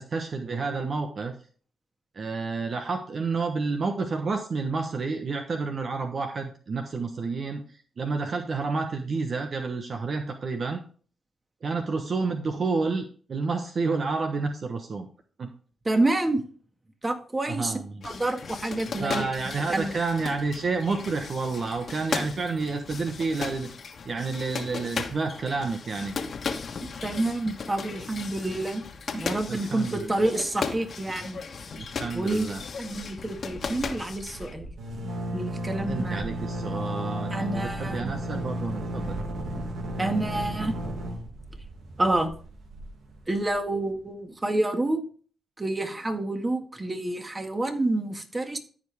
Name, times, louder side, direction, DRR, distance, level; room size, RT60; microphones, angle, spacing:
voice 1, 0.0-1.4 2.1-7.6 8.0-10.8 11.6-15.1 15.4-15.5 17.5-18.0 19.0-23.7 24.0-26.1 29.5-30.4 31.8-32.6 35.9-39.2, right 4 dB, 55° right, 5 dB, 1.2 m, -30 dB
voice 2, 15.9-16.4 17.0-17.8 18.0-19.3 19.7-19.9 27.0-28.8 29.1-31.4 32.1-32.5 32.8-34.7 35.3-36.2 37.3-38.4 40.0-40.8 42.0-42.3 43.3-45.0 45.6-48.6, right 2 dB, 25° right, 5 dB, 2.0 m, -28 dB
sound 1, 18.0-34.5, left 5 dB, 60° left, 1.3 m, -36 dB
sound 2, 31.8-32.2 32.5-32.6 32.9-43.6, equal, 75° right, 2.1 m, -34 dB
14.0 x 5.1 x 3.5 m, 0.41 s
supercardioid pair, 55°, 0 cm